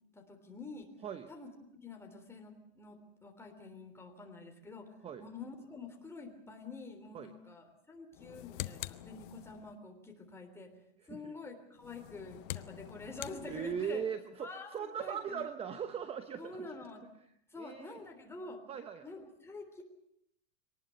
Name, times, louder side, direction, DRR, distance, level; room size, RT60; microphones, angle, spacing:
voice 1, 0.1-0.9 1.3-1.5 1.8-4.9 5.2-10.7 11.1-14.0 14.4-15.5 16.4-17.1 17.5-18.6 19.0-19.8, left 3 dB, 10° left, 3 dB, 3.5 m, -47 dB
sound 1, 8.1-9.8 11.8-14.1, left 17 dB, 55° left, 0.9 m, -45 dB
voice 2, 11.0-11.3 13.5-16.7 17.5-18.0 18.7-19.0, right 7 dB, 20° right, 10 dB, 0.9 m, -39 dB
23.5 x 19.0 x 8.0 m, 0.77 s
supercardioid pair, 145°, 31 cm